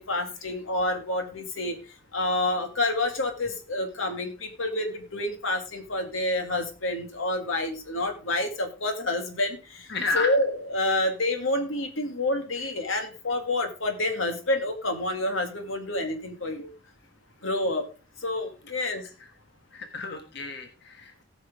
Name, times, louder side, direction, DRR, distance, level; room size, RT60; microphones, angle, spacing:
voice 1, 0.0-1.8 2.1-9.9 10.1-16.7 17.4-17.8 18.2-19.0, left 2 dB, 90° left, 6 dB, 2.1 m, -28 dB
voice 2, 9.9-10.3 19.7-21.2, left 3 dB, 60° left, 5 dB, 1.4 m, -31 dB
18.0 x 6.2 x 3.6 m, 0.33 s
head